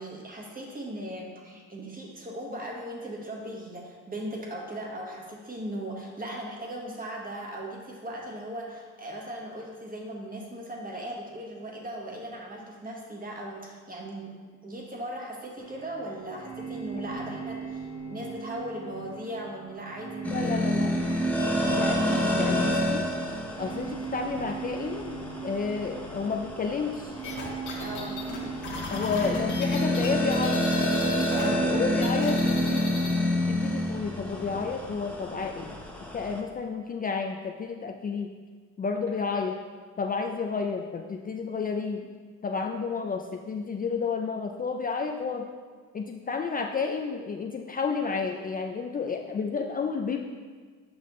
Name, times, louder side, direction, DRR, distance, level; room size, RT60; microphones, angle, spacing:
voice 1, 0.0-14.3 14.6-20.7 23.8-23.9 27.8-28.2 31.3-31.7, right 1 dB, 30° right, -1 dB, 1.5 m, -38 dB
sound 1, 15.6-33.5, right 5 dB, 60° right, 1.0 m, -40 dB
sound 2, 20.2-36.4, left 1 dB, 5° left, 0.9 m, -28 dB
voice 2, 20.3-21.0 21.7-23.0 23.6-27.1 28.9-30.7 31.4-32.8 33.5-35.8 36.1-38.3 38.8-39.5 40.0-42.1 42.4-45.5 45.9-50.2, left 5 dB, 30° left, 2 dB, 0.4 m, -31 dB
sound 3, 27.2-31.4 31.7-33.2, left 3 dB, 80° left, 1.6 m, -37 dB
7.6 x 5.5 x 3.1 m, 1.5 s
cardioid pair, 90°, 30 cm